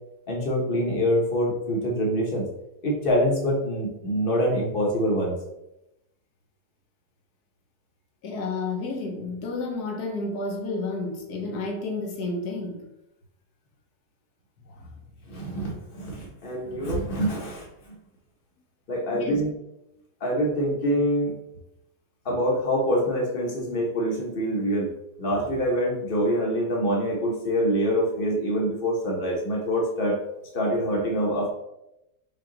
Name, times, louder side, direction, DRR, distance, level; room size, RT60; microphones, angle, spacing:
voice 1, 0.3-2.4 2.8-5.3 15.3-17.9 18.9-19.5 20.2-21.3 22.2-24.9 25.2-30.2 30.5-31.5, equal, 40° left, -2 dB, 1.0 m, -25 dB
voice 2, 8.2-12.8 14.7-14.9 19.1-19.4, left 3 dB, 70° left, 2 dB, 1.3 m, -31 dB
5.7 x 2.4 x 3.8 m, 0.88 s
omnidirectional pair, 1.8 m